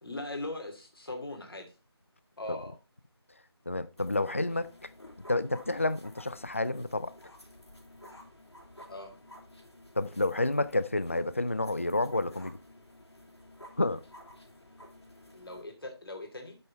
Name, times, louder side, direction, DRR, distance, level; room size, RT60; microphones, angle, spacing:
voice 1, 0.0-1.7 2.4-2.8 8.9-9.1 15.3-16.6, left 2 dB, 55° left, 2.7 m, -40 dB
voice 2, 3.7-4.7 5.3-7.1 10.0-12.6 13.8-14.0, left 2 dB, 30° left, 0.3 m, -29 dB
sound 1, 4.0-15.6, left 1 dB, 75° left, 3.7 m, -53 dB
8.0 x 5.4 x 4.3 m
figure-of-eight pair, 165°, 14 cm